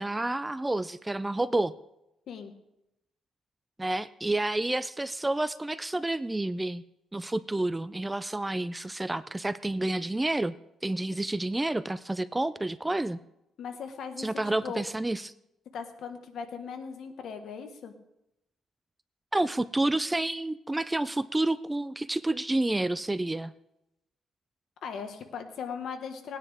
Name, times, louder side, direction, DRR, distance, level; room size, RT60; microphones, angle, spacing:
voice 1, 0.0-1.7 3.8-6.8 7.1-10.6 10.8-13.2 14.2-15.3 19.3-23.5, right 2 dB, 10° right, 15 dB, 0.3 m, -29 dB
voice 2, 13.6-14.8 15.7-17.9 24.8-26.4, left 6 dB, 65° left, 6 dB, 1.4 m, -38 dB
19.0 x 9.7 x 3.5 m, 0.87 s
cardioid pair, 130°, 0 cm